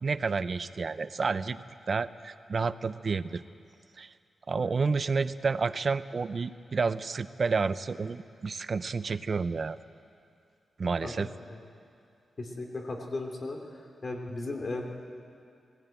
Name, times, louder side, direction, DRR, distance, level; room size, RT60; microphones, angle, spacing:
voice 1, 0.0-3.4 4.0-4.1 4.5-9.8 10.8-11.3, right 4 dB, 45° right, 13 dB, 0.6 m, -30 dB
voice 2, 11.0-11.6 12.4-13.6 14.0-14.8, left 2 dB, 40° left, 2 dB, 2.9 m, -36 dB
19.5 x 16.5 x 9.1 m, 2.4 s
wide cardioid pair, 120°, 0 cm